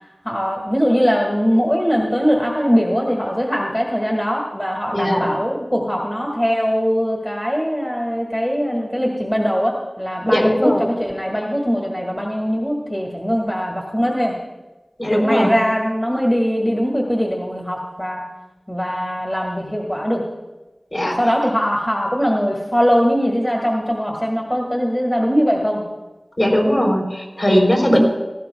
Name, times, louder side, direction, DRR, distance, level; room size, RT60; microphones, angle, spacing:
voice 1, 0.2-14.4 15.1-18.3 18.7-20.2 21.2-25.8 27.5-27.9, equal, 10° left, -1 dB, 1.9 m, -21 dB
voice 2, 4.9-5.3 10.3-10.8 15.0-15.5 20.9-21.2 26.4-28.0, equal, 40° left, -1 dB, 3.9 m, -18 dB
17.5 x 15.5 x 2.3 m, 1.1 s
wide cardioid pair, 60°, 0 cm